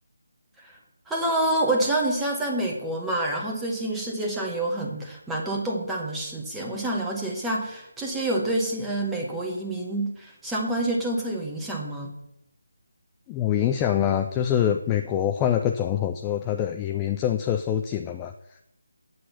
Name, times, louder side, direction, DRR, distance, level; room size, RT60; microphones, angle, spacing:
voice 1, 1.1-12.1, right 1 dB, 5° right, -2 dB, 1.3 m, -27 dB
voice 2, 13.3-18.7, left 10 dB, 15° left, 6 dB, 0.3 m, -25 dB
8.1 x 7.7 x 5.7 m, 0.80 s
figure-of-eight pair, 155°, 0 cm